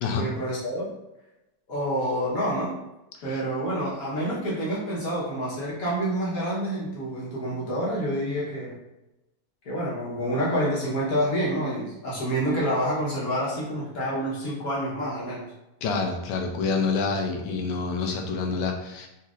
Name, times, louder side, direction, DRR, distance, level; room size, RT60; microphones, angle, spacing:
voice 1, 0.1-0.9 1.7-2.8 3.2-8.8 9.6-15.5, equal, 60° left, -6 dB, 1.3 m, -28 dB
voice 2, 15.8-19.1, left 4 dB, 90° left, 2 dB, 1.3 m, -27 dB
4.1 x 2.8 x 2.3 m, 0.94 s
omnidirectional pair, 2.0 m